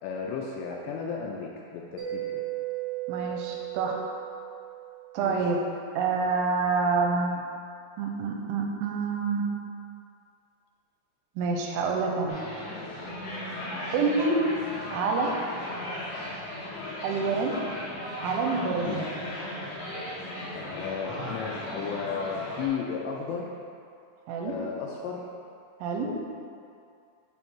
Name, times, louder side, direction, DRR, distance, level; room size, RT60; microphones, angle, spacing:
voice 1, 0.0-2.4 5.2-5.4 18.8-19.0 20.5-23.5 24.4-25.3 26.0-26.1, left 6 dB, 85° left, -1 dB, 2.6 m, -34 dB
Mallet percussion, 2.0-5.4, right 16 dB, 60° right, 2.6 m, -36 dB
voice 2, 3.1-4.0 5.1-5.6 6.0-7.4 8.0-9.4 11.4-12.4 13.9-14.4 14.9-15.3 17.0-17.6 18.2-19.1 24.3-24.5 25.8-26.1, right 4 dB, 85° right, 0 dB, 3.0 m, -27 dB
sound 1, 12.3-22.7, left 1 dB, 65° left, 2.0 m, -36 dB
8.3 x 3.5 x 4.4 m, 2.4 s
omnidirectional pair, 5.4 m